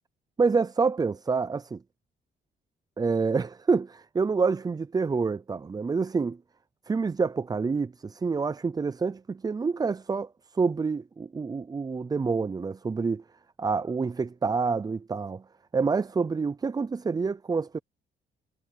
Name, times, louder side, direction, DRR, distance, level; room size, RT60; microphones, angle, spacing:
voice 1, 0.4-1.8 3.0-6.4 6.9-10.3 10.5-13.2 13.6-15.4 15.7-17.8, right 4 dB, 20° right, 0.4 m, -27 dB
cardioid pair, 90°, 20 cm